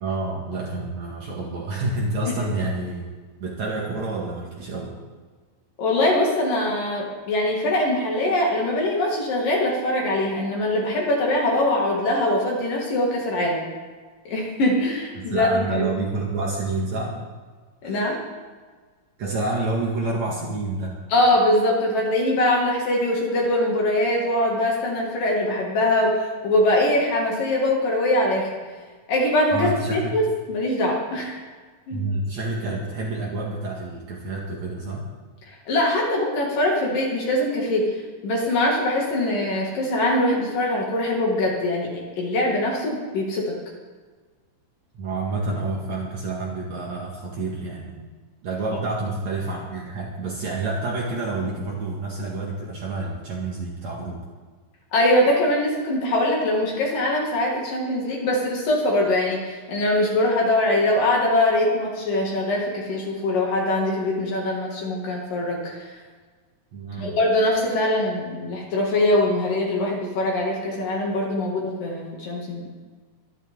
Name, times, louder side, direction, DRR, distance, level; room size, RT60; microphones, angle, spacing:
voice 1, 0.0-3.1 3.4-5.0 15.1-17.2 17.8-18.0 19.2-21.0 29.5-30.1 31.9-35.1 44.9-48.1 48.4-54.2 66.7-67.2, right 2 dB, 55° right, -3 dB, 2.9 m, -28 dB
voice 2, 5.8-13.6 14.3-15.9 17.8-18.2 21.1-28.5 29.1-31.4 31.9-32.0 35.5-37.8 38.2-41.9 42.2-43.5 54.9-65.9 67.0-72.7, left 1 dB, 65° left, -2 dB, 3.9 m, -22 dB
24.0 x 11.5 x 3.8 m, 1.4 s
omnidirectional pair, 4.2 m